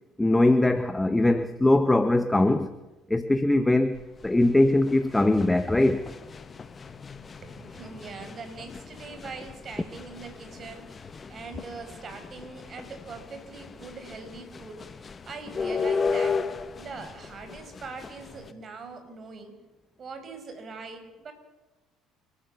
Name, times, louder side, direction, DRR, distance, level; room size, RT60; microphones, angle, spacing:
voice 1, 0.2-2.7 3.1-6.1, left 2 dB, 10° left, 1.2 m, -21 dB
sound 1, 4.0-18.5, left 5 dB, 35° left, 1.6 m, -36 dB
voice 2, 7.4-16.5 16.8-19.6 20.0-21.3, right 4 dB, 45° right, 5.3 m, -42 dB
29.5 x 13.0 x 6.9 m
hypercardioid pair, 60°, 0 cm